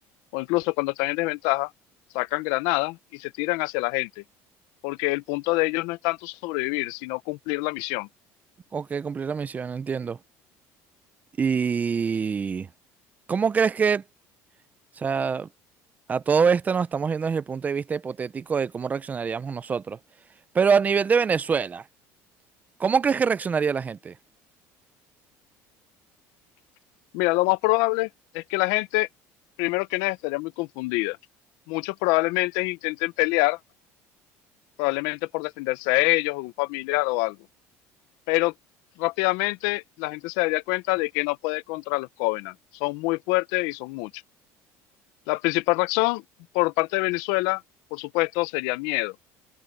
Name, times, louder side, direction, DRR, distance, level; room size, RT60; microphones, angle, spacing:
voice 1, 0.3-1.7 2.1-4.2 4.8-8.1 27.1-28.1 28.3-29.1 29.6-31.2 31.7-33.6 34.8-37.4 38.3-38.5 39.0-44.1 45.3-46.2 46.5-47.6 47.9-49.1, left 23 dB, 85° left, 0.6 m, -25 dB
voice 2, 8.7-10.2 11.4-12.7 13.3-14.0 15.0-15.5 16.1-20.0 20.5-21.8 22.8-24.1, right 6 dB, 25° right, 0.5 m, -24 dB
cardioid pair, 120°, 6 cm